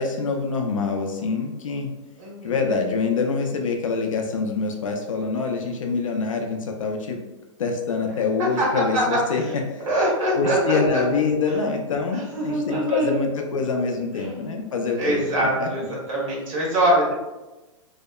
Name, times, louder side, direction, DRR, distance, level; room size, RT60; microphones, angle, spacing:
voice 1, 0.0-1.9 2.4-7.2 7.6-9.9 10.4-15.7, left 4 dB, 85° left, 3 dB, 0.4 m, -25 dB
voice 2, 2.2-2.5 8.6-8.7 8.9-9.0 9.4-9.5 9.9-10.8 12.1-13.2 14.2-14.5 15.0-17.1, right 1 dB, 80° right, -4 dB, 1.0 m, -23 dB
2.7 x 2.1 x 2.2 m, 1.1 s
hypercardioid pair, 115°, 17 cm